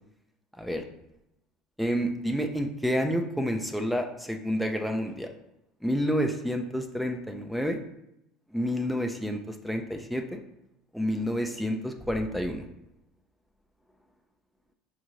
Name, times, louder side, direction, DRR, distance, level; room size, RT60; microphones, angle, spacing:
voice 1, 0.5-0.8 1.8-5.3 5.8-7.8 8.5-10.4 10.9-12.7, equal, ahead, 5 dB, 0.5 m, -29 dB
5.3 x 2.5 x 3.1 m, 0.83 s
hypercardioid pair, 80°, 0 cm